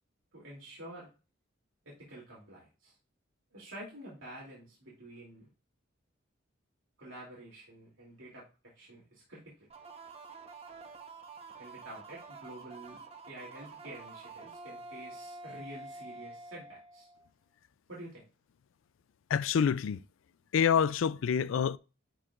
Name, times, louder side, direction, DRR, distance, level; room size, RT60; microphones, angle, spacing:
voice 1, 0.3-1.1 1.8-2.9 3.5-5.5 7.0-8.5 8.7-9.7 11.6-17.1 17.9-18.2, right 1 dB, 75° right, 2.9 m, -49 dB
sound 1, 9.7-17.3, right 3 dB, 30° right, 0.9 m, -48 dB
voice 2, 19.3-20.0 20.5-21.8, left 7 dB, 75° left, 0.4 m, -27 dB
11.0 x 4.7 x 2.5 m
head